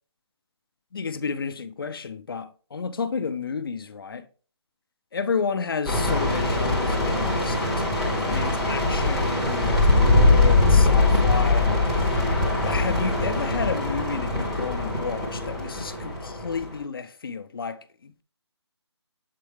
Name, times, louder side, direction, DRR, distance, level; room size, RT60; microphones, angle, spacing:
voice 1, 0.9-4.3 5.1-12.2 12.6-18.2, left 5 dB, 55° left, 0.7 m, -31 dB
sound 1, 5.8-16.7, left 2 dB, ahead, 0.8 m, -22 dB
7.6 x 4.6 x 3.4 m
hypercardioid pair, 170°, 15 cm